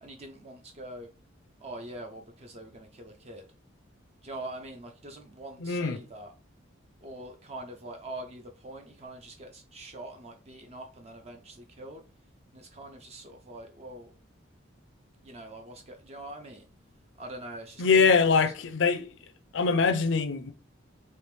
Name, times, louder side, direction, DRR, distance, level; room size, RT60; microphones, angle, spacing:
voice 1, 0.0-1.1 1.6-3.4 4.2-6.3 7.0-12.0 12.5-14.1 15.2-16.7 17.2-18.5, right 1 dB, 30° right, 0.4 m, -44 dB
voice 2, 5.6-6.0 17.8-19.1 19.5-20.5, left 5 dB, 65° left, 0.5 m, -23 dB
3.4 x 2.9 x 3.1 m
head